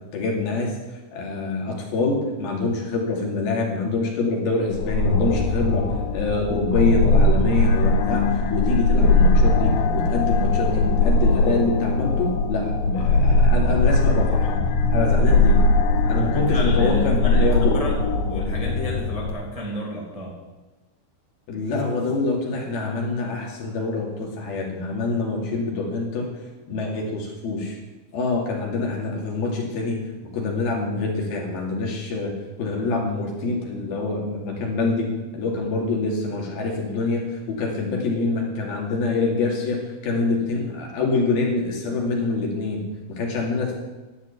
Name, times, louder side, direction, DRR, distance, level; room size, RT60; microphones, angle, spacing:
voice 1, 0.1-0.7 1.1-14.6 14.9-15.6 16.1-17.8 21.5-26.3 26.7-27.8 28.1-30.0 30.3-32.3 32.6-42.8 43.1-43.8, left 3 dB, 55° left, -1 dB, 4.1 m, -25 dB
sound 1, 4.7-19.3, left 2 dB, 85° left, 3.7 m, -20 dB
voice 2, 16.1-18.0 18.3-20.3, equal, 25° right, -2 dB, 0.7 m, -32 dB
12.0 x 8.2 x 9.4 m, 1.1 s
omnidirectional pair, 5.5 m